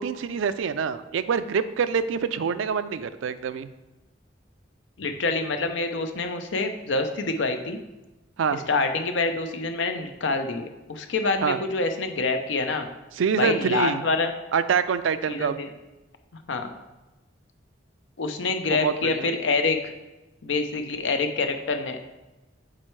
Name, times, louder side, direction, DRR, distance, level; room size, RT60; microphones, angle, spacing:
voice 1, 0.0-3.7 8.4-8.6 11.4-11.6 13.2-14.0 14.5-15.6 18.7-19.3, right 6 dB, 85° right, 12 dB, 0.4 m, -25 dB
voice 2, 5.0-7.8 8.5-12.9 13.3-14.3 15.3-15.7 16.5-16.7 18.2-19.9 20.4-22.1, left 3 dB, 75° left, 6 dB, 0.6 m, -26 dB
7.5 x 4.4 x 3.2 m, 1.1 s
head